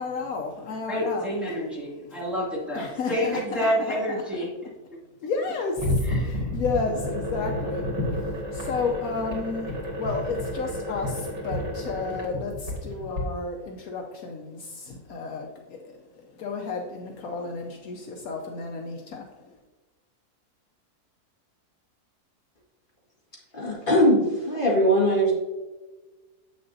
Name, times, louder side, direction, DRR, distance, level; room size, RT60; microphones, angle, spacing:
voice 1, 0.0-1.3 2.0-2.2 2.7-4.2 5.2-7.9 8.5-19.6, left 4 dB, 70° left, 2 dB, 1.1 m, -32 dB
voice 2, 0.9-4.5 6.1-6.5, equal, ahead, -8 dB, 2.2 m, -28 dB
sound 1, 5.8-13.2, left 1 dB, 85° right, 2.5 m, -30 dB
voice 3, 23.5-25.3, equal, 35° left, -4 dB, 1.8 m, -21 dB
7.9 x 6.6 x 2.7 m, 1.2 s
omnidirectional pair, 1.6 m